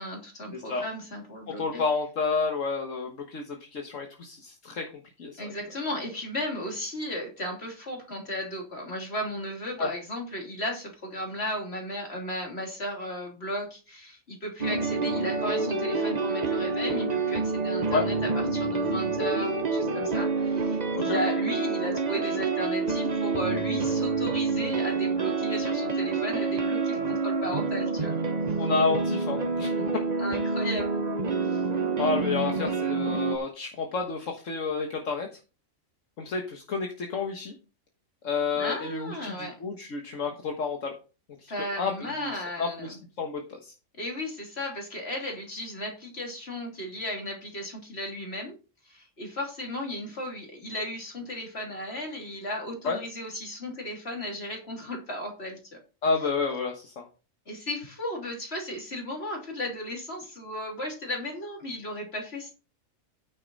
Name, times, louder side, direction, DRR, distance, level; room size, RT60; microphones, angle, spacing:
voice 1, 0.0-1.8 5.4-28.1 30.2-31.0 31.4-31.7 38.5-39.5 41.5-42.9 44.0-48.6 48.8-55.8 57.5-62.5, left 1 dB, 50° left, 0 dB, 3.4 m, -35 dB
voice 2, 0.5-0.8 1.5-4.9 5.2-5.5 9.8-9.9 17.9-18.1 20.9-21.2 28.6-29.7 32.0-35.3 36.2-37.5 38.2-40.9 41.4-41.5 41.8-43.7 52.8-53.0 56.0-57.0, left 4 dB, 70° left, 2 dB, 1.8 m, -30 dB
sound 1, 14.6-33.4, right 4 dB, 35° right, 1.0 m, -27 dB
9.6 x 7.5 x 4.1 m, 0.34 s
omnidirectional pair, 1.4 m